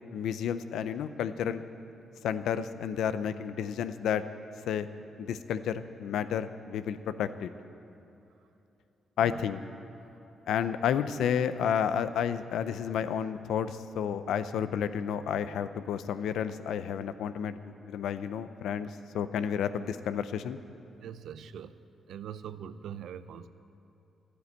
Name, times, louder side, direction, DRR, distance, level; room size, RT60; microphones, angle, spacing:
voice 1, 0.1-1.6 2.2-4.2 4.7-4.9 5.2-7.5 9.2-9.6 10.5-18.9 19.1-20.6, left 8 dB, 85° left, 12 dB, 0.6 m, -31 dB
voice 2, 21.0-21.7 22.1-23.5, right 9 dB, 80° right, 13 dB, 0.5 m, -42 dB
12.0 x 9.6 x 9.6 m, 3.0 s
cardioid pair, 85°, 0 cm